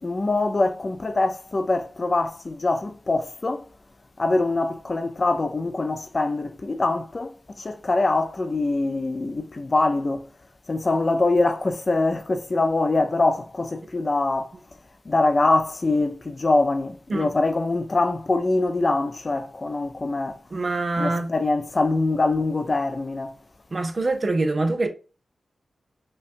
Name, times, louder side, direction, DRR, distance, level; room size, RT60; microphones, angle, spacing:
voice 1, 0.0-3.6 4.2-10.3 10.7-14.5 15.1-20.4 21.0-23.3, left 2 dB, 40° left, 0.4 m, -23 dB
voice 2, 20.5-21.3 23.7-24.9, right 2 dB, 45° right, 0.7 m, -24 dB
5.1 x 2.2 x 2.5 m
cardioid pair, 65°, 0 cm